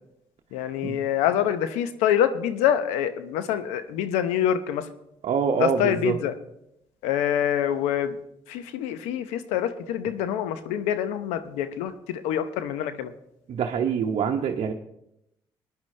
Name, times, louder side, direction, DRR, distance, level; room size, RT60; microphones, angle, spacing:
voice 1, 0.5-4.9 5.6-6.3 7.0-8.2 8.5-13.1, left 10 dB, 85° left, 11 dB, 0.8 m, -26 dB
voice 2, 5.2-6.2 13.5-14.7, right 7 dB, 65° right, 2 dB, 0.9 m, -25 dB
20.0 x 10.0 x 3.2 m, 0.82 s
hypercardioid pair, 50°, 11 cm